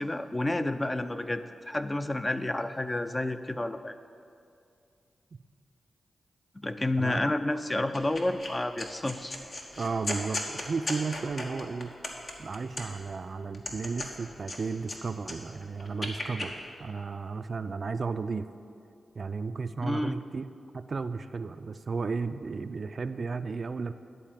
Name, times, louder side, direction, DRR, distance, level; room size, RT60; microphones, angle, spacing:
voice 1, 0.0-3.9 6.6-9.4 19.8-20.1, left 1 dB, 25° left, 10 dB, 0.5 m, -30 dB
voice 2, 7.0-7.3 9.8-11.9 12.4-18.5 19.2-20.4 20.7-23.9, right 4 dB, 55° right, 11 dB, 0.3 m, -34 dB
sound 1, 7.9-8.5 8.8-13.1 13.5-15.0 15.2-16.5, left 2 dB, 55° left, 1.3 m, -36 dB
10.5 x 4.2 x 7.4 m, 2.4 s
supercardioid pair, 45°, 0 cm